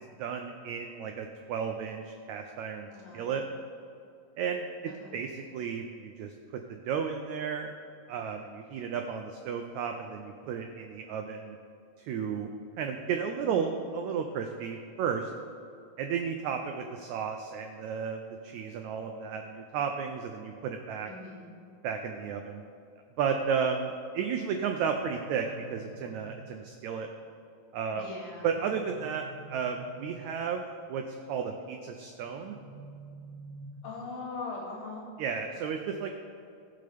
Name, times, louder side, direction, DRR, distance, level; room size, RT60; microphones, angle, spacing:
voice 1, 0.2-2.9 3.1-3.4 4.4-7.7 8.1-11.6 12.0-12.5 12.8-15.3 16.0-21.1 21.8-22.6 23.2-27.1 27.7-28.0 28.4-31.0 31.3-32.5 35.2-36.1, right 6 dB, 85° right, 4 dB, 1.6 m, -33 dB
voice 2, 2.9-3.4 4.9-5.2 13.4-14.0 21.0-21.5 27.9-28.5 33.8-35.1, left 3 dB, 75° left, -4 dB, 3.7 m, -41 dB
sound 1, 24.8-26.8 28.5-30.6 32.2-34.2, right 3 dB, 60° right, 2.6 m, -49 dB
19.5 x 6.7 x 3.4 m, 2.5 s
omnidirectional pair, 4.0 m